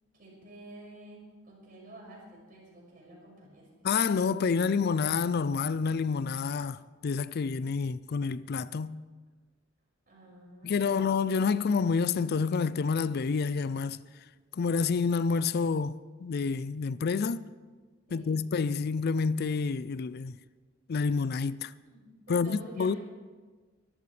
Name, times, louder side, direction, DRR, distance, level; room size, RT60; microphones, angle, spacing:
voice 1, 0.1-3.9 10.1-11.1 18.1-18.4 21.9-23.0, right 1 dB, 45° right, 6.2 m, -50 dB
voice 2, 3.8-9.0 10.6-14.0 14.5-17.5 18.1-20.4 20.9-21.7 22.3-23.0, left 5 dB, 55° left, 0.4 m, -28 dB
24.0 x 14.0 x 3.3 m
head